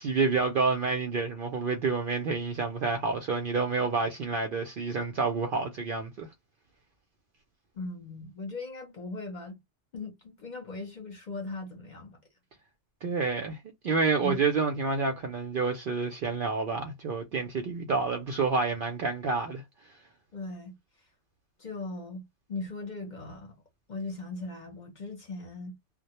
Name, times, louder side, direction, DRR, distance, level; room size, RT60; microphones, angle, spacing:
voice 1, 0.0-6.3 13.0-13.6 13.8-19.6, right 4 dB, 60° right, 0.6 m, -28 dB
voice 2, 7.7-9.6 9.9-12.2 14.2-14.4 20.3-20.7 21.6-23.6 23.9-25.8, left 3 dB, 45° left, 0.7 m, -39 dB
2.1 x 2.1 x 2.9 m
omnidirectional pair, 1.3 m